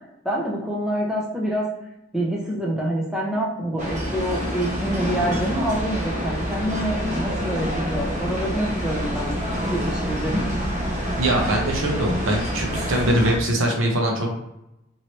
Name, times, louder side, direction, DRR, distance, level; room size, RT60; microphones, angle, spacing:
voice 1, 0.2-1.7 2.1-9.3 9.7-10.4, right 1 dB, 5° right, -4 dB, 0.6 m, -26 dB
sound 1, 3.8-13.4, equal, 35° right, 0.8 m, -27 dB
voice 2, 11.2-14.3, right 1 dB, 70° right, 0 dB, 0.8 m, -22 dB
3.1 x 2.8 x 3.0 m, 0.87 s
head